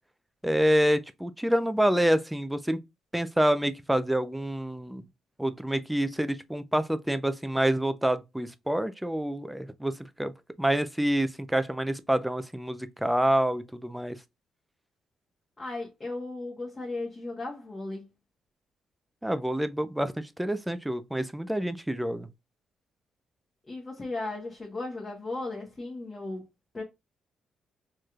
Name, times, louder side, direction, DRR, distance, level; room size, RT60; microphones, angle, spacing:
voice 1, 0.4-2.8 3.1-5.0 5.4-10.3 10.6-14.2 19.2-22.3, right 1 dB, 5° right, 0.4 m, -27 dB
voice 2, 15.6-18.1 23.7-26.5 26.7-26.8, left 2 dB, 25° left, 1.3 m, -36 dB
4.5 x 3.1 x 2.4 m
cardioid pair, 90°, 0 cm